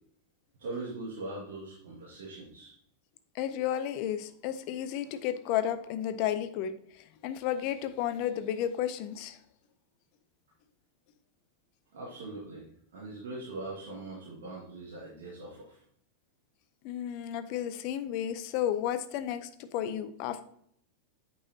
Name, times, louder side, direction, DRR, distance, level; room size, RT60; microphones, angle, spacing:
voice 1, 0.6-2.7 11.9-15.8, right 2 dB, 60° right, -6 dB, 2.0 m, -41 dB
voice 2, 3.3-9.4 16.8-20.4, left 10 dB, 45° left, 11 dB, 0.6 m, -32 dB
8.7 x 5.5 x 2.8 m, 0.67 s
figure-of-eight pair, 90°, 0 cm